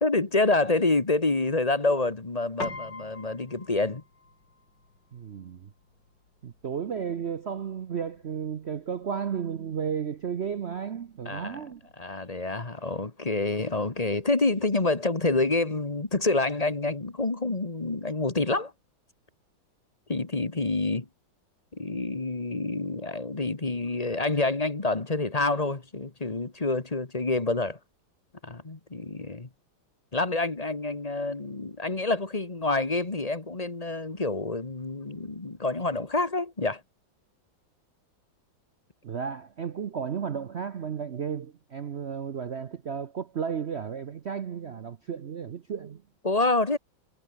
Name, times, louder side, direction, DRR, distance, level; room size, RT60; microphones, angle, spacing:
voice 1, 0.0-4.0 11.2-11.7 12.0-18.7 20.1-21.1 21.7-27.8 28.4-29.5 30.1-36.8 46.2-46.8, left 2 dB, 20° left, 1.5 m, -27 dB
Piano, 2.6-12.2, left 3 dB, 60° left, 6.0 m, -46 dB
voice 2, 5.1-5.7 6.4-11.8 39.0-46.0, right 7 dB, 60° right, 0.6 m, -33 dB
omnidirectional pair, 2.2 m